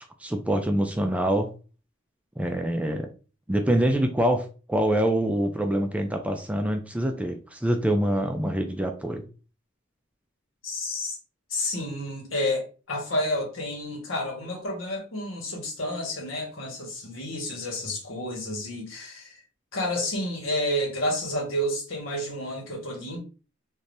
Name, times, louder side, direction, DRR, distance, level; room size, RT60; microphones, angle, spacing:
voice 1, 0.2-1.5 2.4-3.1 3.5-9.2, right 1 dB, 5° right, 0.3 m, -25 dB
voice 2, 10.6-11.2 11.5-19.4 19.7-23.2, left 1 dB, 75° left, 1.3 m, -30 dB
3.3 x 2.6 x 2.6 m
head